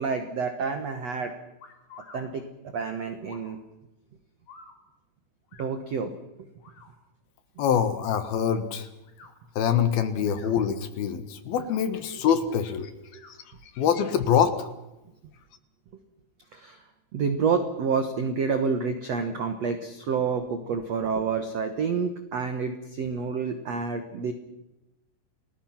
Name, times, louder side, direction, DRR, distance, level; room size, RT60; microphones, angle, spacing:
voice 1, 0.0-1.3 2.1-2.5 2.7-3.6 5.6-6.2 13.1-13.2 16.5-16.8 17.1-24.3, right 5 dB, 80° right, 8 dB, 1.4 m, -28 dB
sound 1, 1.6-2.2 3.2-3.5 4.5-4.7 5.5-5.7 6.6-6.9 8.0-8.3 9.0-9.3 10.1-10.6 11.4-11.8 13.1-13.3, left 4 dB, 45° left, 4.3 m, -49 dB
voice 2, 7.6-8.9 9.6-12.9 13.8-14.7, left 8 dB, 65° left, 10 dB, 2.9 m, -24 dB
30.0 x 20.0 x 6.0 m, 0.95 s
omnidirectional pair, 5.3 m